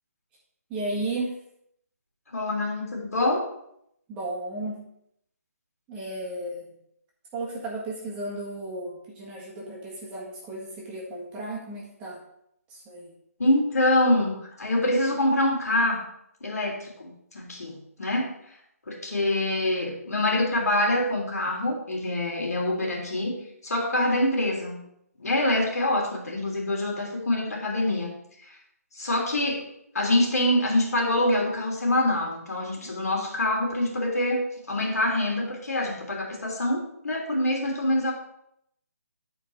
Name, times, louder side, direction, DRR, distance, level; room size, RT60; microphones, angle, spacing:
voice 1, 0.7-1.4 4.1-4.8 5.9-6.7 7.3-12.2 12.7-13.1, right 2 dB, 15° right, -4 dB, 1.6 m, -34 dB
voice 2, 2.3-3.5 13.4-16.0 16.4-18.3 18.9-23.3 23.6-24.8 25.2-28.1 28.9-29.6 29.9-38.1, left 1 dB, 70° left, 0 dB, 3.1 m, -25 dB
10.5 x 4.7 x 4.7 m, 0.74 s
hypercardioid pair, 160°, 9 cm